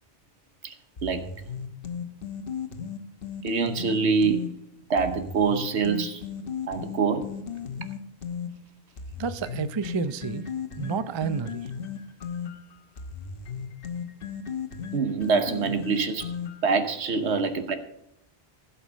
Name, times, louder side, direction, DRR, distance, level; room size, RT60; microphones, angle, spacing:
sound 1, 1.0-4.5 5.0-8.5 9.0-16.8, left 7 dB, 60° left, 1.2 m, -35 dB
voice 1, 3.4-4.4 4.9-6.2 6.7-7.3 14.9-16.3 16.6-17.8, right 5 dB, 90° right, 8 dB, 1.3 m, -25 dB
voice 2, 9.2-10.5 10.8-11.7, right 6 dB, 35° right, 13 dB, 0.5 m, -30 dB
16.0 x 5.7 x 6.2 m, 0.76 s
omnidirectional pair, 1.1 m